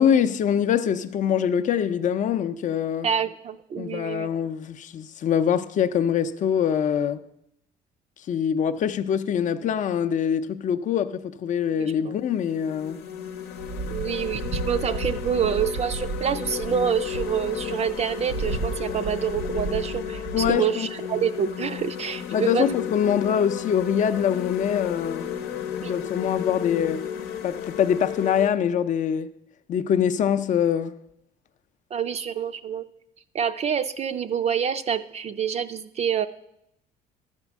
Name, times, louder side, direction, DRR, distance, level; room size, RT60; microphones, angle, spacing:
voice 1, 0.0-3.1 3.8-7.2 8.3-13.0 20.3-20.9 22.3-25.4 25.8-27.1 27.4-29.3 29.7-31.0, left 8 dB, 50° left, 0.5 m, -24 dB
voice 2, 3.0-4.3 11.8-12.1 13.9-22.7 25.8-25.9 31.9-32.9 33.3-36.3, right 8 dB, 40° right, 0.4 m, -27 dB
sound 1, 11.6-11.7 12.3-28.5, left 9 dB, 80° left, 0.8 m, -34 dB
sound 2, 13.6-20.5, right 4 dB, 85° right, 1.0 m, -34 dB
11.5 x 4.4 x 7.2 m
cardioid pair, 110°, 17 cm